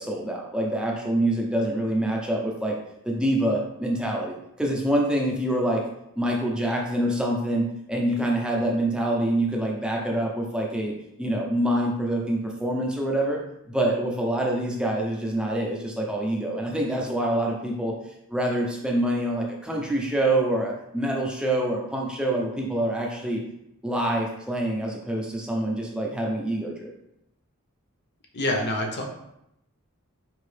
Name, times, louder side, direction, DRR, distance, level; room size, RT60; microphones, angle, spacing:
voice 1, 0.0-2.8 3.0-5.8 6.2-10.9 11.2-13.4 13.7-17.9 18.3-23.4 23.8-26.9, right 1 dB, 5° right, -2 dB, 0.6 m, -26 dB
voice 2, 28.3-29.0, left 1 dB, 50° left, 1 dB, 0.7 m, -26 dB
4.5 x 2.9 x 3.2 m, 0.82 s
head